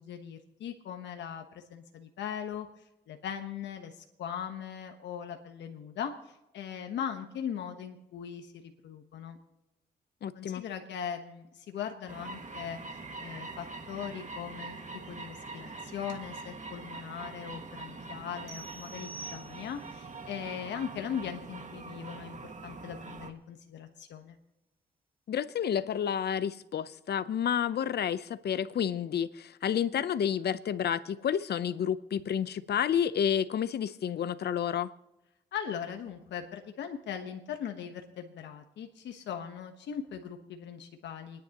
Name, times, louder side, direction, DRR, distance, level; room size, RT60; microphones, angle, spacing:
voice 1, 0.0-2.7 3.1-6.1 6.5-8.5 8.8-9.4 10.3-14.8 15.1-24.4 35.5-41.4, left 8 dB, 85° left, 6 dB, 1.2 m, -39 dB
voice 2, 10.2-10.6 25.3-34.9, left 9 dB, 65° left, 14 dB, 0.7 m, -30 dB
sound 1, 12.1-23.3, right 3 dB, 40° right, 1.9 m, -44 dB
sound 2, 18.5-20.0, right 3 dB, 70° right, 2.6 m, -46 dB
29.0 x 10.5 x 3.0 m, 0.95 s
supercardioid pair, 45°, 18 cm